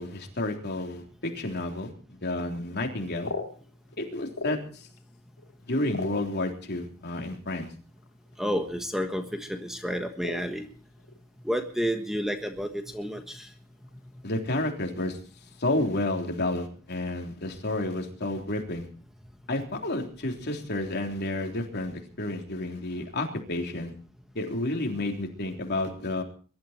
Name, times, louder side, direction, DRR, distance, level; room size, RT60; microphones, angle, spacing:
voice 1, 0.0-1.9 2.2-3.3 4.0-4.9 5.7-7.7 14.2-15.2 15.6-18.9 19.5-23.9 24.4-26.2, left 2 dB, 50° left, 2 dB, 3.5 m, -30 dB
sound 1, 2.9-5.0 5.4-6.8 7.6-7.7 8.0-8.3 8.6-9.0 9.3-9.5 10.2-11.2 11.5-12.4 12.6-12.7 13.1-13.4 13.9-14.3, left 3 dB, 70° left, 2.7 m, -39 dB
voice 2, 8.4-10.6 11.4-13.5, equal, ahead, 5 dB, 1.4 m, -30 dB
23.0 x 12.5 x 4.4 m, 0.40 s
head